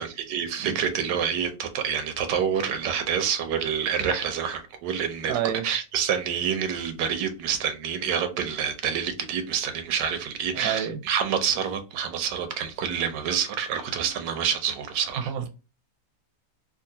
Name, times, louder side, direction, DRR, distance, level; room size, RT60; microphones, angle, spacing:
voice 1, 0.0-15.3, right 7 dB, 90° right, 1.3 m, -27 dB
voice 2, 5.3-5.6 10.5-11.0 15.3-15.5, right 9 dB, 70° right, 1.0 m, -28 dB
3.7 x 2.4 x 2.6 m
omnidirectional pair, 1.8 m